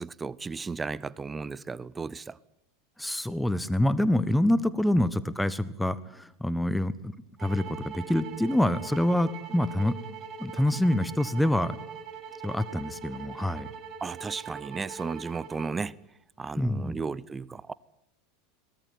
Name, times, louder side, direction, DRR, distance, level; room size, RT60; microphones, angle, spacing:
voice 1, 0.0-2.4 5.0-5.1 14.0-15.9 16.4-17.7, right 4 dB, 20° right, 0.8 m, -34 dB
voice 2, 3.0-7.1 7.4-10.0 10.4-11.8 12.4-13.7 16.6-17.0, left 1 dB, 5° left, 1.3 m, -26 dB
sound 1, 7.4-15.8, right 7 dB, 45° right, 7.4 m, -42 dB
23.0 x 19.5 x 9.4 m
hypercardioid pair, 85°, 0 cm